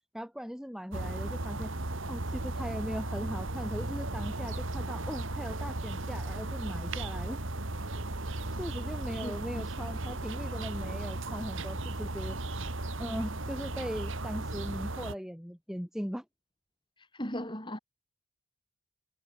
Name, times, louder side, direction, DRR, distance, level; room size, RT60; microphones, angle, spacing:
voice 1, 0.1-1.7 2.1-7.4 8.6-12.4 13.0-16.2, equal, ahead, 7.3 m, -39 dB
sound 1, 0.9-15.2, right 2 dB, 60° right, 2.1 m, -36 dB
voice 2, 9.2-9.6 17.0-17.8, equal, 20° left, 6.6 m, -38 dB
head